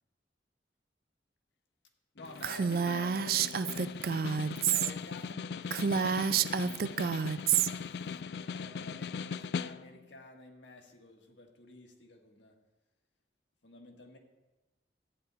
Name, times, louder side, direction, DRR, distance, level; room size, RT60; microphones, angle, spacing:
voice 1, 2.1-3.9 4.4-7.0 8.4-12.6 13.6-14.2, left 2 dB, 90° left, 2 dB, 1.7 m, -51 dB
Snare drum, 2.2-10.1, left 6 dB, 60° left, 0.3 m, -40 dB
Female speech woman speaking, 2.4-4.9 5.2-5.3 5.7-7.7, right 7 dB, 55° right, 0.4 m, -29 dB
14.0 x 9.6 x 4.1 m, 1.1 s
head